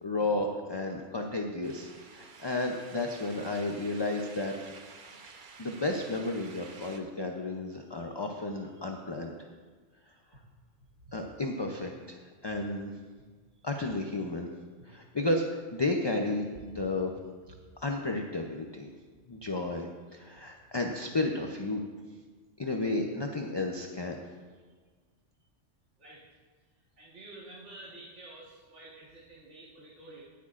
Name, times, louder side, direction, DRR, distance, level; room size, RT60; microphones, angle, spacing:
voice 1, 0.0-4.5 5.6-9.3 11.1-12.9 13.6-14.5 14.9-17.1 17.8-18.9 19.3-19.9 20.1-21.8 22.6-24.2, left 2 dB, 30° left, 2 dB, 0.5 m, -32 dB
sound 1, 1.6-7.0, right 4 dB, 50° right, 0.9 m, -51 dB
voice 2, 27.0-30.2, right 2 dB, 80° right, -6 dB, 1.9 m, -49 dB
19.0 x 8.2 x 2.5 m, 1.5 s
omnidirectional pair, 1.2 m